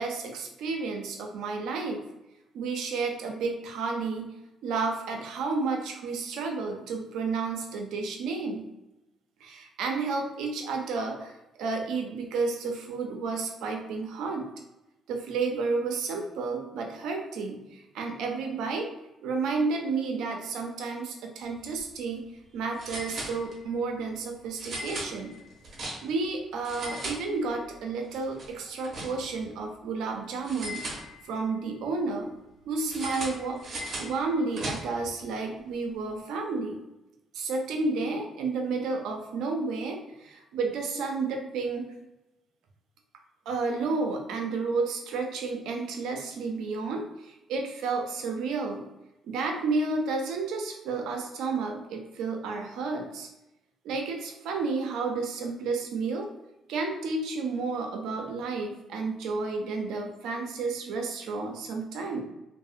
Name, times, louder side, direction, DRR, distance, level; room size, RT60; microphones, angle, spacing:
voice 1, 0.0-2.0 2.5-4.3 4.6-8.7 9.4-11.3 11.6-14.5 15.1-18.9 19.2-22.2 22.5-25.3 26.0-30.8 31.2-32.3 32.7-36.8 37.3-41.9 43.5-48.8 49.2-53.3 53.8-56.3 56.7-62.2, right 4 dB, 85° right, 3 dB, 0.4 m, -31 dB
sound 1, 21.6-21.8 22.1-22.2 22.8-23.8 24.6-26.3 26.6-27.8 28.1-29.5 30.4-31.6 32.9-35.1, right 1 dB, 55° right, 0.8 m, -38 dB
2.6 x 2.0 x 2.4 m, 0.95 s
cardioid pair, 90°, 0 cm